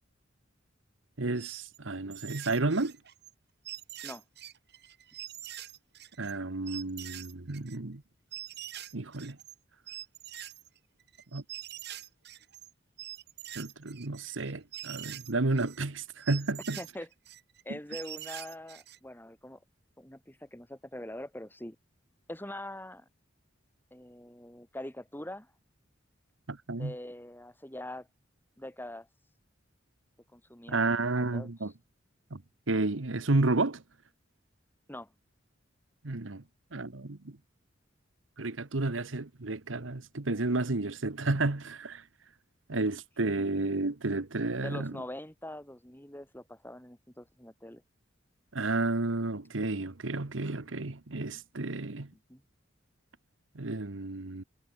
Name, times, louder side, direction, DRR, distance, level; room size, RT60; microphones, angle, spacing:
voice 1, 1.2-2.9 6.2-8.0 8.9-9.4 11.3-11.4 13.5-16.8 17.7-17.8 26.5-26.9 30.7-31.7 32.3-32.4 32.7-33.8 36.0-36.4 36.7-37.4 38.4-42.0 42.7-44.9 48.5-52.1 53.5-54.4, right 2 dB, 85° right, 1.3 m, -31 dB
sound 1, 1.4-1.8 2.1-3.3 3.6-6.4 6.7-7.8 8.3-9.5 9.9-12.7 13.0-15.8 16.2-17.6 17.9-19.0, right 12 dB, 60° right, 5.9 m, -44 dB
voice 2, 16.8-17.1 17.7-19.6 20.0-21.8 22.3-23.1 23.9-25.5 26.7-28.1 28.6-29.1 30.3-31.5 34.9-35.1 42.7-43.0 43.4-43.5 44.6-47.8 52.1-52.4, left 1 dB, 10° left, 6.8 m, -43 dB
head